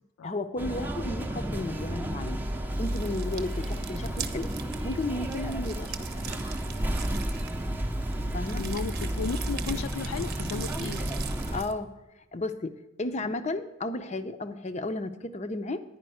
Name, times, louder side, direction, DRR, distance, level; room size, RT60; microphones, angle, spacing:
voice 1, 0.2-2.4 2.8-4.5 4.8-6.4 8.3-8.7 11.5-11.9 12.3-15.8, left 2 dB, 35° left, 10 dB, 0.6 m, -33 dB
sound 1, 0.6-11.6, right 1 dB, 10° right, 0.6 m, -32 dB
sound 2, 2.7-11.7, right 8 dB, 50° right, 0.8 m, -42 dB
voice 2, 8.5-11.0 13.2-13.3, left 6 dB, 75° left, 12 dB, 0.3 m, -35 dB
10.5 x 5.1 x 7.8 m, 1.1 s
head